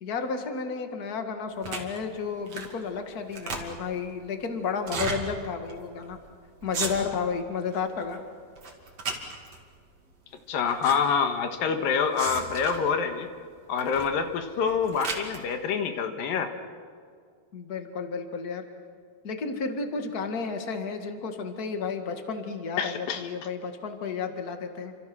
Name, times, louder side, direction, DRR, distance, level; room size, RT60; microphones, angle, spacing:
voice 1, 0.0-6.2 6.6-8.2 17.5-18.6 19.2-25.0, left 5 dB, 35° left, 6 dB, 1.6 m, -32 dB
sound 1, 1.6-2.0 2.5-2.8 3.1-4.0 4.8-5.2 5.7-5.8 6.0-6.3 6.6-7.3 7.7-8.2 8.6-9.6 10.4-11.0 11.2-11.3 12.2-12.9 13.8-14.1 14.5-15.4, right 4 dB, 45° right, 3.5 m, -34 dB
voice 2, 10.5-13.3 13.7-16.5 22.8-23.2, left 6 dB, 70° left, 6 dB, 3.1 m, -26 dB
29.5 x 26.0 x 6.2 m, 2.1 s
omnidirectional pair, 4.3 m